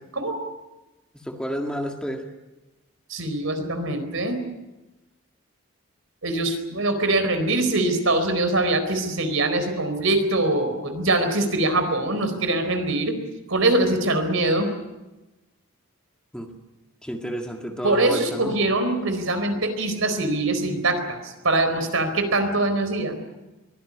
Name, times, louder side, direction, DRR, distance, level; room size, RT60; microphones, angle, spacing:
voice 1, 1.1-2.3 16.3-16.5 17.0-18.5, equal, 5° left, 2 dB, 1.8 m, -30 dB
voice 2, 3.1-4.4 6.2-13.2 13.5-14.7 17.8-23.2, right 2 dB, 65° right, 8 dB, 4.3 m, -23 dB
23.0 x 17.0 x 9.8 m, 1.0 s
head